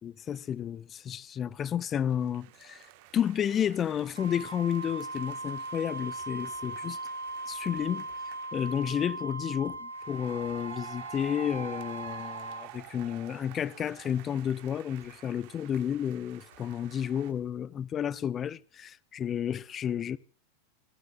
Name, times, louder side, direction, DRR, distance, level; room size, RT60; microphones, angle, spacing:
voice 1, 0.0-2.8 3.1-7.0 7.5-8.1 8.5-20.2, left 9 dB, 25° left, 0.6 m, -31 dB
sound 1, 1.9-9.2 9.9-17.3, right 16 dB, 45° right, 1.4 m, -49 dB
Wind instrument woodwind instrument, 4.1-12.7, right 2 dB, 85° right, 1.5 m, -39 dB
sound 2, 6.5-6.8 7.3-7.7 8.1-9.1 9.6-10.1 10.4-10.9 11.2-17.8, left 3 dB, 65° left, 4.8 m, -64 dB
26.5 x 13.0 x 2.4 m
figure-of-eight pair, 90°, 0 cm